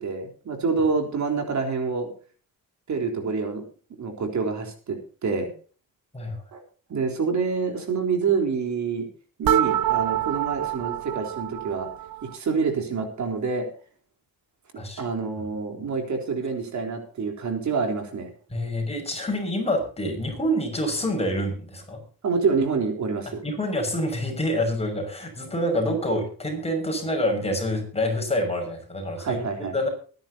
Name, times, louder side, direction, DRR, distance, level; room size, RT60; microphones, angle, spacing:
voice 1, 0.0-2.1 2.9-3.6 4.0-5.5 6.5-6.6 6.9-9.1 9.4-11.9 12.2-13.7 14.7-18.3 22.2-23.4 29.2-29.7, right 5 dB, 55° right, 4 dB, 3.9 m, -27 dB
sound 1, 9.5-12.4, right 12 dB, 80° right, 0.8 m, -26 dB
voice 2, 18.5-22.0 23.4-29.4 29.7-29.9, equal, 15° left, 3 dB, 6.0 m, -27 dB
23.0 x 10.5 x 2.8 m, 0.39 s
cardioid pair, 130°, 35 cm